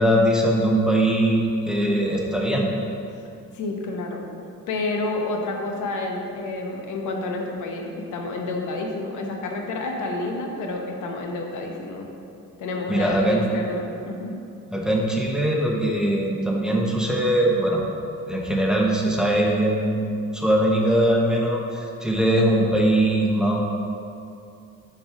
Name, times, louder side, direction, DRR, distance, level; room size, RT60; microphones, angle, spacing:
voice 1, 0.0-2.7 12.9-13.4 14.7-17.8 18.3-23.6, right 1 dB, ahead, -2 dB, 1.0 m, -21 dB
voice 2, 3.5-4.2 4.7-12.1 12.6-14.3, left 2 dB, 80° left, 1 dB, 0.9 m, -29 dB
5.1 x 4.5 x 5.9 m, 2.6 s
cardioid pair, 90°, 30 cm